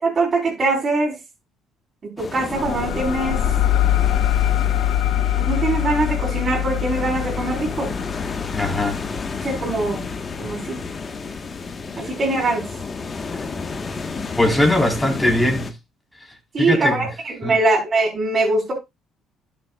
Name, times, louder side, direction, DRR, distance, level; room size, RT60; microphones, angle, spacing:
voice 1, 0.0-1.1 2.0-3.4 5.4-7.9 9.4-10.1 10.4-10.8 12.0-12.6 16.5-18.7, right 2 dB, 35° right, 4.7 m, -22 dB
sound 1, 2.2-15.7, left 4 dB, 35° left, 1.4 m, -31 dB
sound 2, 2.5-11.7, left 11 dB, 90° left, 0.7 m, -24 dB
voice 2, 8.5-9.0 14.4-15.7 16.6-17.0 17.4-17.6, left 1 dB, 10° left, 4.3 m, -20 dB
11.5 x 7.2 x 2.4 m
supercardioid pair, 85°, 0 cm